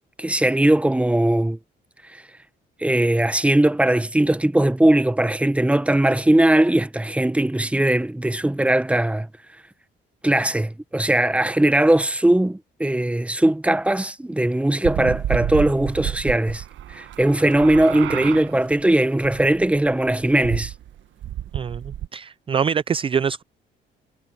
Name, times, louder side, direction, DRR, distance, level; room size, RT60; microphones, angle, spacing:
voice 1, 0.2-1.6 2.1-2.2 2.8-9.3 10.2-16.6 16.9-20.7, right 1 dB, 5° right, 0.9 m, -19 dB
sound 1, 14.8-22.1, right 11 dB, 70° right, 1.4 m, -30 dB
sound 2, 16.3-18.5, right 14 dB, 90° right, 6.5 m, -35 dB
voice 2, 21.5-23.4, right 7 dB, 25° right, 0.3 m, -24 dB
cardioid pair, 90°, 20 cm